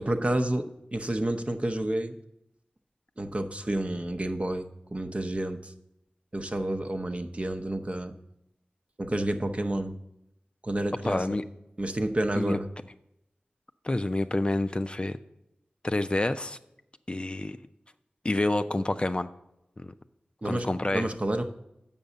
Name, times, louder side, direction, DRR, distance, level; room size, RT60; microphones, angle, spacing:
voice 1, 0.0-2.2 3.2-5.7 6.3-8.1 9.0-10.0 10.6-11.3 11.8-12.7 20.4-20.7 20.9-21.5, right 1 dB, 40° right, 6 dB, 0.7 m, -30 dB
voice 2, 11.0-11.4 12.4-12.6 13.8-15.2 15.8-16.6 17.1-17.6 18.2-19.3 19.8-19.9 20.5-21.1, left 2 dB, 30° left, 10 dB, 0.4 m, -28 dB
7.1 x 5.3 x 6.7 m, 0.85 s
cardioid pair, 45°, 3 cm